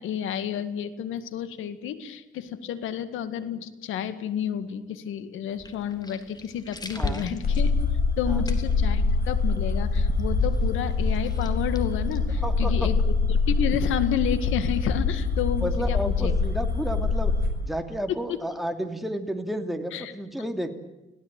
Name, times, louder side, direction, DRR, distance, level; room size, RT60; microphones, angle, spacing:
voice 1, 0.0-7.8 8.2-16.0 16.2-16.3 19.9-20.1, left 9 dB, 85° left, 12 dB, 2.0 m, -31 dB
sound 1, 5.5-12.8, left 2 dB, 20° left, 3.3 m, -40 dB
voice 2, 6.9-7.3 8.2-8.5 12.4-12.9 15.6-17.3 17.6-20.7, right 1 dB, ahead, 5 dB, 2.8 m, -31 dB
sound 2, 7.4-17.5, left 4 dB, 50° left, 7.2 m, -24 dB
25.5 x 17.0 x 9.0 m, 1.0 s
cardioid pair, 90°, 20 cm